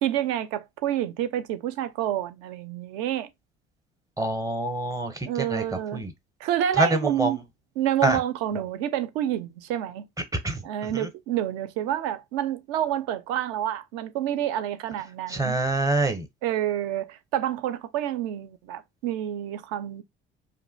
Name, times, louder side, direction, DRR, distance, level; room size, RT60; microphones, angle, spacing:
voice 1, 0.0-3.3 5.2-6.0 6.4-7.4 7.8-10.1 10.6-15.6 16.4-20.0, right 11 dB, 60° right, 0.5 m, -28 dB
voice 2, 4.2-5.6 5.9-6.1 6.8-7.3 8.0-8.2 10.4-10.6 10.9-11.1 15.3-16.3, right 1 dB, 10° right, 0.6 m, -25 dB
2.7 x 2.2 x 2.6 m
figure-of-eight pair, 60°, 29 cm